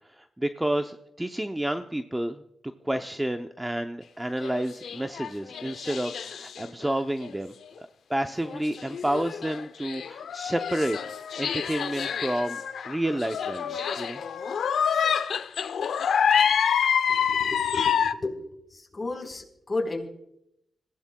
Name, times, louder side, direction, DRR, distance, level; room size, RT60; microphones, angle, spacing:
voice 1, 0.1-2.4 2.8-11.0 11.3-14.2, right 1 dB, 10° right, 6 dB, 0.6 m, -30 dB
sound 1, 4.4-6.8 7.2-7.3 8.5-18.1, left 7 dB, 80° left, 0.6 m, -27 dB
voice 2, 17.1-20.1, left 2 dB, 30° left, 1 dB, 3.9 m, -34 dB
26.0 x 16.0 x 2.3 m, 0.81 s
cardioid pair, 90°, 0 cm